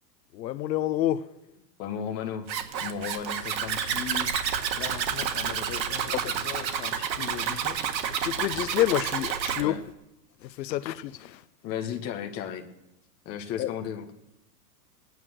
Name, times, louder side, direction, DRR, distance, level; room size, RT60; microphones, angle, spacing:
voice 1, 0.3-1.3 6.1-6.2 8.2-9.8 10.4-11.4 13.6-13.7, left 13 dB, 85° left, 0.8 m, -28 dB
voice 2, 1.8-2.5 2.8-4.3 4.8-7.8 9.6-9.8 11.6-12.7 13.2-14.1, left 8 dB, 30° left, 1.3 m, -36 dB
Zipper (clothing), 2.5-9.6, right 8 dB, 90° right, 1.8 m, -29 dB
19.5 x 9.6 x 6.4 m
supercardioid pair, 155°, 50 cm